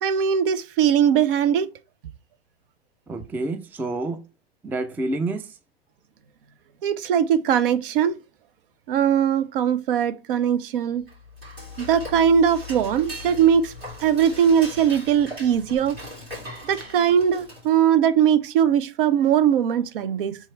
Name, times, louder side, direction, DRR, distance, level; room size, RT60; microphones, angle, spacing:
voice 1, 0.0-1.7 6.8-8.2 8.9-11.0 11.8-13.7 14.0-16.0 16.7-20.4, right 8 dB, 65° right, 0.5 m, -20 dB
voice 2, 3.1-4.2 4.6-5.6, right 2 dB, 5° right, 0.3 m, -28 dB
Dishes pots and pans / Cutlery silverware, 11.0-17.9, left 1 dB, 85° right, 2.2 m, -39 dB
3.4 x 3.1 x 4.4 m
figure-of-eight pair, 90°, 30 cm